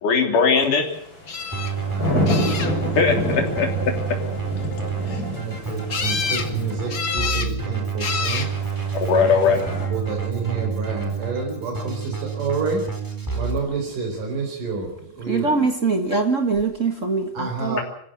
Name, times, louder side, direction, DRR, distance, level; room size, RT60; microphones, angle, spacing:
voice 1, 0.0-0.9 3.0-3.9 5.1-5.2 8.9-9.6, left 5 dB, 70° left, 4.7 m, -19 dB
sound 1, 0.9-7.2 8.2-9.9, left 1 dB, 25° left, 7.0 m, -28 dB
sound 2, 1.3-1.7 2.3-3.0 5.9-6.5 6.9-7.5 8.0-8.5 9.4-9.9 16.1-16.2 16.6-16.7, left 5 dB, 45° left, 1.0 m, -28 dB
Keyboard (musical), 1.5-13.6, right 6 dB, 5° right, 4.0 m, -28 dB
voice 2, 1.8-2.7 3.7-3.8 5.1-8.5 9.1-9.6 9.9-12.9 13.3-15.5 17.3-17.8, right 4 dB, 75° right, 6.1 m, -29 dB
voice 3, 15.3-17.8, right 4 dB, 40° right, 1.2 m, -22 dB
26.0 x 15.5 x 8.0 m
omnidirectional pair, 3.8 m